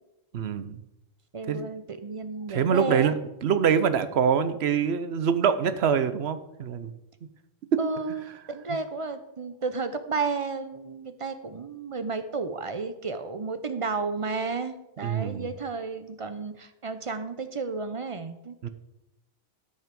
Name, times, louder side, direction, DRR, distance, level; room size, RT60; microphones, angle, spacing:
voice 1, 0.3-0.8 1.5-1.6 2.5-3.1 3.4-6.9 15.0-15.5 18.6-18.7, right 7 dB, 80° right, 12 dB, 1.0 m, -24 dB
voice 2, 1.3-3.1 7.8-18.7, right 4 dB, 35° right, 10 dB, 0.7 m, -32 dB
12.5 x 5.5 x 5.2 m, 0.91 s
omnidirectional pair, 1.1 m